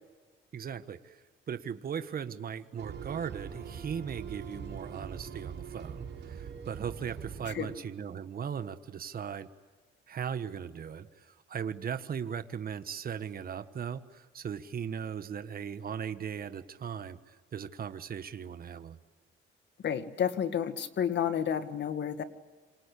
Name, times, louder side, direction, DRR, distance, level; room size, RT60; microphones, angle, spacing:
voice 1, 0.5-9.5 10.1-19.0, right 7 dB, 50° right, 10 dB, 1.4 m, -38 dB
sound 1, 2.8-7.8, right 7 dB, 65° right, 5.2 m, -42 dB
voice 2, 19.8-22.2, left 8 dB, 60° left, 10 dB, 2.0 m, -30 dB
27.5 x 25.5 x 8.5 m, 1.4 s
cardioid pair, 90°, 20 cm